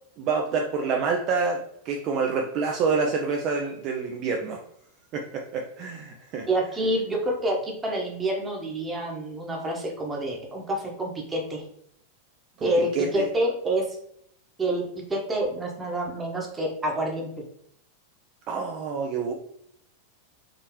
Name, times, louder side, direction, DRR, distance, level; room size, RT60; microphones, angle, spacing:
voice 1, 0.2-4.6 5.1-6.5 12.6-13.3 18.5-19.3, right 5 dB, 40° right, 2 dB, 0.5 m, -27 dB
voice 2, 6.5-11.6 12.6-13.8 14.6-14.8 15.1-17.3, right 1 dB, 15° right, 0 dB, 1.0 m, -27 dB
3.9 x 3.1 x 3.0 m, 0.69 s
figure-of-eight pair, 90°, 0 cm